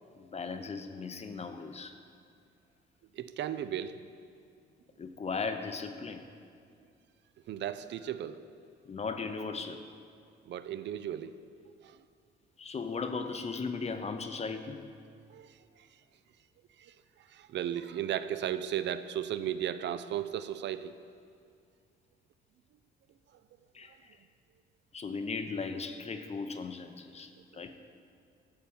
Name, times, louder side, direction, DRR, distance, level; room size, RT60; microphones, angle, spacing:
voice 1, 0.2-2.0 5.0-6.3 8.9-9.8 12.6-14.8 23.7-24.1 24.9-27.7, left 4 dB, 35° left, 7 dB, 0.6 m, -37 dB
voice 2, 3.1-4.0 7.5-8.5 10.5-11.4 11.7-12.0 15.3-15.9 16.8-21.0, right 10 dB, 65° right, 13 dB, 0.5 m, -36 dB
11.5 x 4.4 x 7.1 m, 2.3 s
cardioid pair, 90°, 20 cm